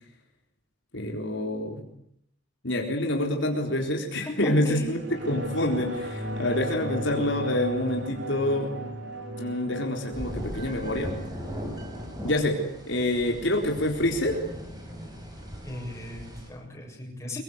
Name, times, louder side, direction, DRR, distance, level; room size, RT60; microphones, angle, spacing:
voice 1, 0.9-1.8 2.6-8.7 9.4-11.1 12.2-12.6 12.9-14.4, left 1 dB, 65° left, 2 dB, 4.2 m, -27 dB
voice 2, 4.3-5.0 15.6-17.4, equal, 15° left, 0 dB, 7.1 m, -36 dB
sound 1, 4.9-14.0 14.3-14.4, equal, 60° right, 4.4 m, -37 dB
sound 2, 10.1-16.5, equal, 20° right, 6.8 m, -38 dB
25.0 x 23.0 x 8.2 m, 0.71 s
head